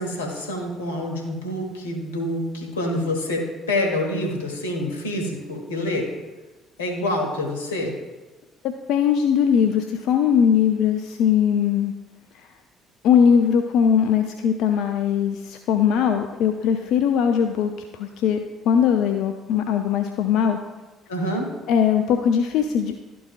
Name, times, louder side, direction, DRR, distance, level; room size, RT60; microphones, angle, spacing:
voice 1, 0.0-6.1 6.8-7.9 21.1-21.5, left 1 dB, 75° left, 1 dB, 1.3 m, -27 dB
voice 2, 8.6-11.9 13.0-18.4 18.7-20.6 21.7-23.0, left 8 dB, 55° left, 6 dB, 0.4 m, -20 dB
12.5 x 4.7 x 2.4 m, 1.2 s
figure-of-eight pair, 50°, 0 cm